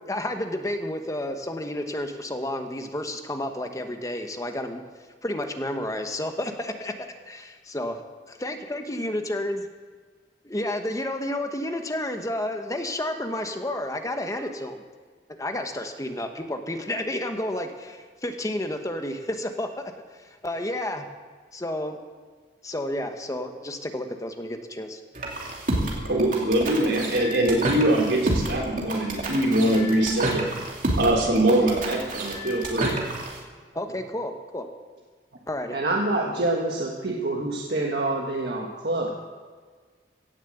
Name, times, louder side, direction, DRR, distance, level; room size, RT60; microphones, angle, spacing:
voice 1, 0.0-4.8 5.2-9.7 10.4-14.8 15.4-21.1 21.5-22.0 22.6-25.0 33.7-34.7 35.5-35.8, left 1 dB, 20° left, 6 dB, 1.0 m, -31 dB
sound 1, 25.1-33.4, right 1 dB, 50° right, 2.7 m, -29 dB
voice 2, 26.0-30.5 31.0-33.0, right 1 dB, 85° right, -1 dB, 3.8 m, -23 dB
voice 3, 35.7-39.1, right 2 dB, 65° right, -1 dB, 1.5 m, -26 dB
17.0 x 7.3 x 7.8 m, 1.5 s
head